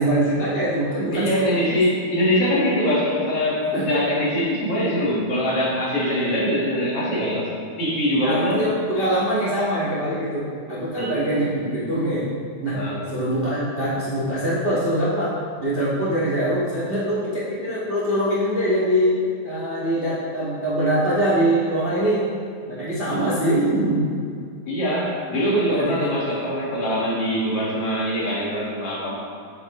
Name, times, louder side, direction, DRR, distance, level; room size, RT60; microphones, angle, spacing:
voice 1, 0.0-1.5 3.7-3.9 8.2-12.3 12.6-12.8 13.1-22.2 22.7-24.1 25.7-26.1, right 1 dB, 45° right, -8 dB, 0.7 m, -23 dB
voice 2, 1.1-7.5 7.8-8.7 11.0-11.2 12.7-13.0 24.7-29.2, equal, 50° left, -6 dB, 2.5 m, -23 dB
8.5 x 8.5 x 3.1 m, 2.2 s
omnidirectional pair, 3.6 m